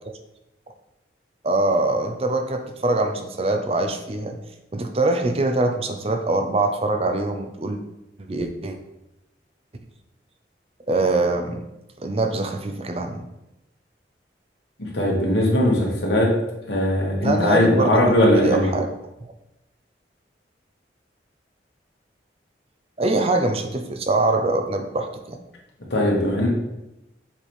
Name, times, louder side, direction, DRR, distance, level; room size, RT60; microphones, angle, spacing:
voice 1, 1.4-4.4 4.7-7.8 8.3-8.8 10.9-11.7 12.0-13.2 17.2-18.9 23.0-25.4, right 2 dB, 35° right, 6 dB, 0.6 m, -23 dB
voice 2, 14.8-16.3 16.7-18.7 25.9-26.5, left 1 dB, 75° left, -2 dB, 1.8 m, -19 dB
7.2 x 3.4 x 4.5 m, 0.90 s
head